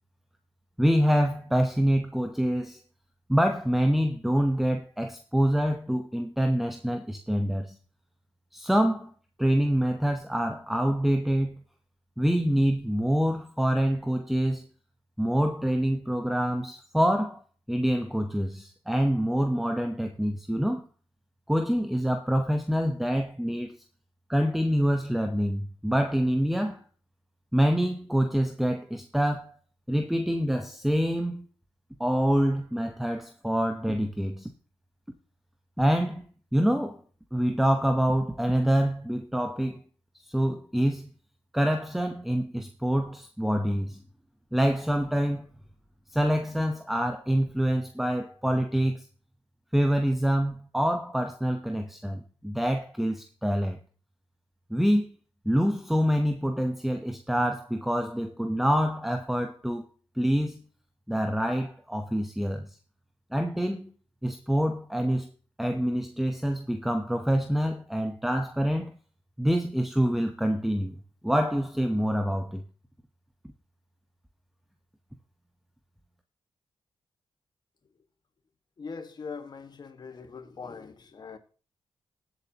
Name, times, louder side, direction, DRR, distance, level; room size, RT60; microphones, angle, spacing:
voice 1, 0.8-2.8 3.3-7.7 8.5-9.1 9.4-11.6 12.2-14.6 15.2-17.4 17.7-20.9 21.5-23.8 24.3-26.8 27.5-29.5 29.9-31.4 32.0-34.5 35.8-36.2 36.5-37.0 37.3-39.8 40.2-41.1 41.5-44.0 44.5-45.5 46.1-49.1 49.7-53.8 54.7-55.1 55.4-59.8 60.2-60.6 61.1-62.7 63.3-63.9 64.2-65.3 65.6-68.9 69.4-71.0 71.2-72.6, equal, ahead, 0.9 m, -26 dB
voice 2, 78.8-81.4, left 5 dB, 50° left, 1.6 m, -41 dB
19.5 x 8.0 x 2.9 m
cardioid pair, 90°, 9 cm